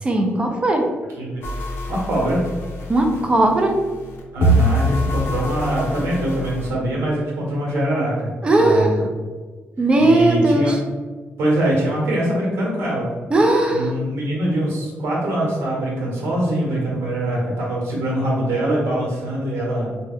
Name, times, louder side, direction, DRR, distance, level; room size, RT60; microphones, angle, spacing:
voice 1, 0.0-0.9 2.9-3.7 8.4-9.0 9.8-10.8 13.3-13.9, right 1 dB, 25° right, 3 dB, 0.5 m, -17 dB
sound 1, 1.4-6.7, right 1 dB, 65° left, 0.6 m, -24 dB
voice 2, 1.9-2.5 4.3-9.1 10.0-10.7 11.4-13.1 13.7-20.0, right 1 dB, 80° right, -3 dB, 1.1 m, -23 dB
2.9 x 2.2 x 3.5 m, 1.4 s
cardioid pair, 135°, 4 cm